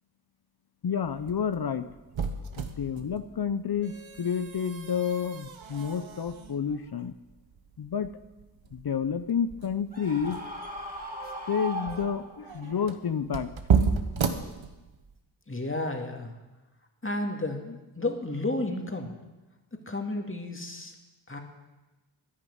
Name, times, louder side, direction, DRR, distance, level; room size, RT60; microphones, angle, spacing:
voice 1, 0.8-1.9 2.6-7.1 7.8-8.1 8.7-10.4 11.5-13.5, left 7 dB, 50° left, 12 dB, 0.8 m, -30 dB
sound 1, 1.0-15.2, right 6 dB, 70° right, 1.3 m, -33 dB
Screaming, 9.9-12.6, equal, 15° right, 2.9 m, -38 dB
voice 2, 15.5-16.4 17.0-19.2 19.7-20.9 21.3-21.4, left 2 dB, 25° left, 3 dB, 2.3 m, -32 dB
10.5 x 10.5 x 8.7 m, 1.1 s
cardioid pair, 45°, 48 cm